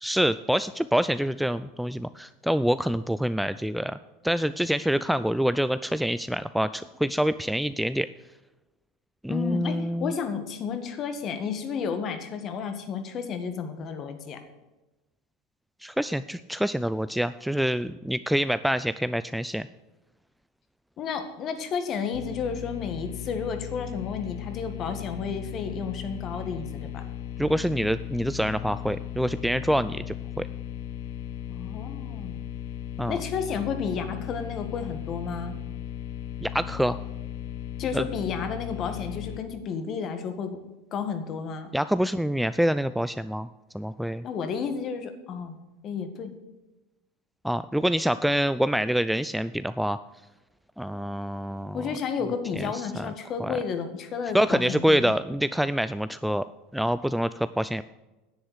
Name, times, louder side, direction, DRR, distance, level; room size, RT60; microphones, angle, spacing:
voice 1, 0.0-4.0 4.2-8.1 9.2-10.1 15.8-19.7 27.4-30.5 33.0-33.2 36.4-37.0 37.9-38.1 41.7-44.2 47.4-50.0 50.8-51.9 52.6-52.7 53.0-53.1 53.4-53.6 54.3-56.4 56.7-57.8, equal, ahead, 13 dB, 0.4 m, -26 dB
voice 2, 9.3-14.4 21.0-27.0 31.5-32.4 33.1-35.6 37.8-40.6 40.9-41.7 44.2-45.6 45.8-46.4 51.7-55.1, left 6 dB, 45° left, 8 dB, 1.8 m, -32 dB
sound 1, 22.1-39.4, left 10 dB, 75° left, 1.0 m, -37 dB
10.0 x 7.9 x 8.0 m, 1.1 s
supercardioid pair, 105°, 0 cm